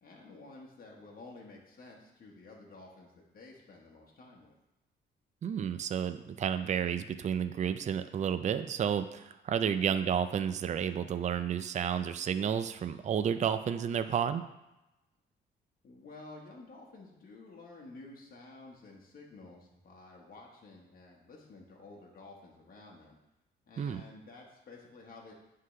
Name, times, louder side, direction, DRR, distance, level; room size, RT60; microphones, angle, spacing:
voice 1, 0.0-4.6 15.8-23.2 23.7-25.3, left 3 dB, 45° left, -2 dB, 1.3 m, -52 dB
voice 2, 5.4-14.4 23.8-24.0, right 8 dB, 35° right, 11 dB, 0.4 m, -31 dB
9.4 x 3.7 x 3.2 m, 0.96 s
cardioid pair, 90°, 20 cm